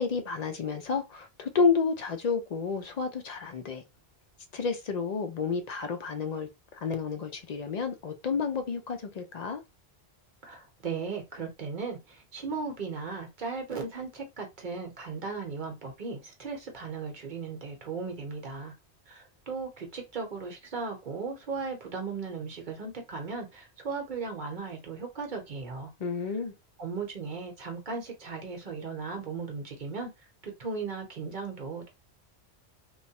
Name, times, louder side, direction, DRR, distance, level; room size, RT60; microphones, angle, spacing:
voice 1, 0.0-3.8 4.5-6.5 6.8-9.6 26.0-26.5, left 5 dB, 55° left, 0.5 m, -30 dB
voice 2, 10.4-18.7 19.1-25.9 26.8-30.1 30.4-31.9, right 4 dB, 50° right, 0.9 m, -37 dB
3.0 x 2.1 x 2.7 m
omnidirectional pair, 1.1 m